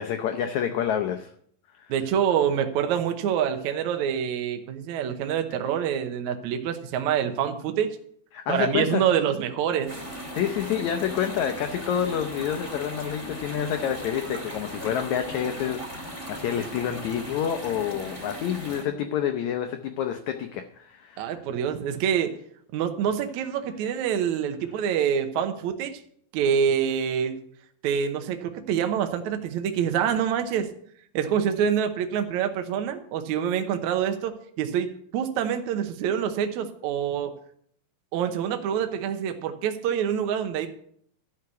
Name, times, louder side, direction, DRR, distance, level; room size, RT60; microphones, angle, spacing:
voice 1, 0.0-1.3 1.7-1.9 8.3-9.1 10.3-21.4, left 9 dB, 85° left, 7 dB, 1.6 m, -28 dB
voice 2, 1.9-7.9 8.5-9.9 21.2-22.3 22.7-26.0 26.3-27.4 27.8-30.7 31.1-37.3 38.1-40.7, right 8 dB, 70° right, 7 dB, 1.9 m, -26 dB
sound 1, 9.9-18.8, equal, 15° right, 1.4 m, -38 dB
12.5 x 5.8 x 8.1 m, 0.65 s
omnidirectional pair, 4.2 m